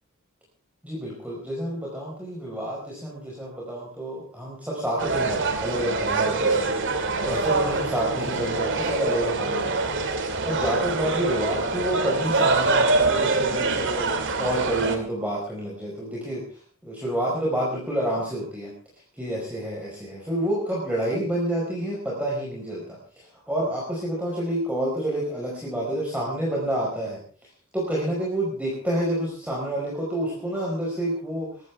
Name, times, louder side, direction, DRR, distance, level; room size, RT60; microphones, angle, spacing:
voice 1, 0.8-6.8 7.2-18.7 19.1-31.5, right 1 dB, 5° right, -5 dB, 4.8 m, -29 dB
sound 1, 5.0-15.0, right 3 dB, 60° right, 2.5 m, -24 dB
22.0 x 14.5 x 3.5 m, 0.44 s
head